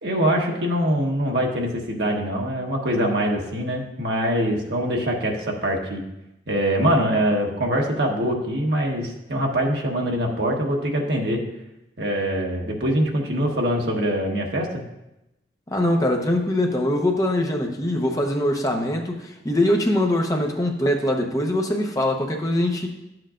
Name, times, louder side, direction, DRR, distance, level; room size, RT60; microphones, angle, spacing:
voice 1, 0.0-6.0 6.5-11.4 12.0-14.8, equal, 65° right, 0 dB, 1.3 m, -23 dB
voice 2, 15.7-22.9, left 1 dB, 20° left, 2 dB, 0.8 m, -22 dB
11.5 x 7.8 x 2.5 m, 0.91 s
head